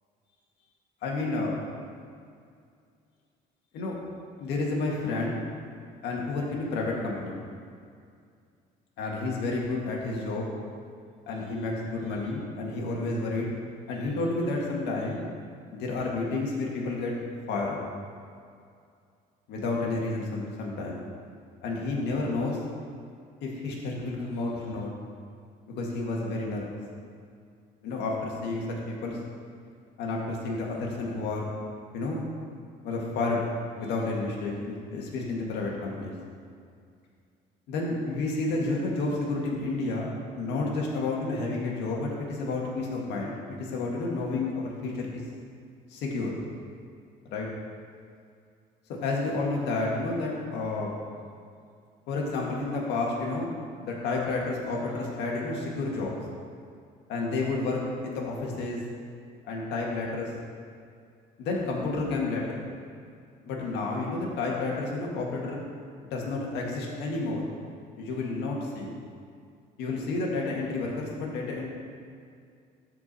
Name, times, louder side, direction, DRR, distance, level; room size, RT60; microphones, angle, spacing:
voice 1, 1.0-1.6 3.7-4.0 4.4-5.4 6.0-7.4 9.0-10.5 11.3-13.5 13.9-15.2 15.7-17.1 17.5-17.8 19.5-21.0 21.6-22.6 23.4-24.9 25.7-26.7 27.8-29.2 30.0-31.5 31.9-32.2 32.8-33.5 33.8-36.1 37.7-45.2 45.9-46.4 47.3-47.5 49.0-51.0 52.1-53.5 53.8-56.1 57.1-58.8 59.4-60.3 61.4-62.7 63.5-65.6 66.1-67.5 68.0-68.9 69.8-71.7, left 3 dB, 85° left, -2 dB, 1.9 m, -30 dB
12.5 x 4.7 x 4.3 m, 2.3 s
cardioid pair, 110°, 17 cm